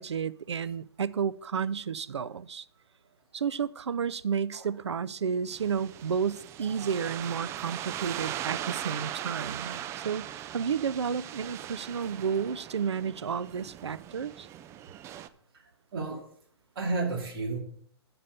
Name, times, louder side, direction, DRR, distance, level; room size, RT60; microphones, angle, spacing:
voice 1, 0.0-2.7 3.3-14.5, right 7 dB, 85° right, 0.5 m, -32 dB
sound 1, 5.5-15.3, right 11 dB, 20° right, 0.4 m, -39 dB
voice 2, 15.5-16.2 16.8-17.6, right 3 dB, 60° right, 2.3 m, -32 dB
6.8 x 6.8 x 5.6 m
hypercardioid pair, 125°, 14 cm